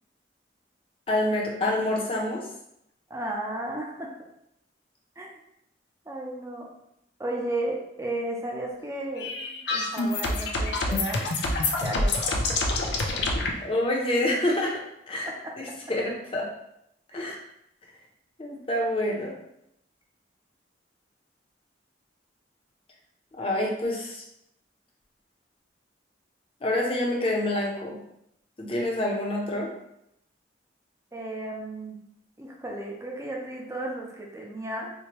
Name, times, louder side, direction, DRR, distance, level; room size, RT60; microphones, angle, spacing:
voice 1, 1.1-2.5 13.6-15.3 15.9-16.5 17.1-17.4 18.4-19.4 23.4-24.2 26.6-28.0 28.6-29.7, left 1 dB, 30° left, -2 dB, 0.6 m, -27 dB
voice 2, 3.1-4.1 5.2-5.3 6.1-6.7 7.2-9.3 9.7-11.3 11.8-12.5 15.2-15.3 17.1-17.3 31.1-32.0 32.4-34.9, right 1 dB, 15° right, -1 dB, 0.5 m, -34 dB
sound 1, 9.2-13.5, left 2 dB, 70° left, 0.5 m, -26 dB
4.5 x 2.2 x 2.9 m, 0.79 s
head